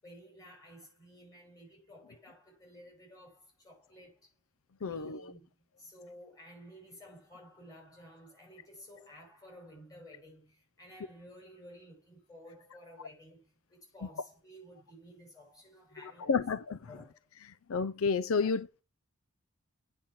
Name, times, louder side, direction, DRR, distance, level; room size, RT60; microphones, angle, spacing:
voice 1, 0.0-4.3 4.8-16.5 16.9-17.3 18.4-18.6, equal, 15° left, 6.1 m, -54 dB
voice 2, 4.8-5.3 16.3-16.8 17.7-18.8, left 5 dB, 85° left, 0.5 m, -30 dB
8.7 x 5.7 x 7.2 m
head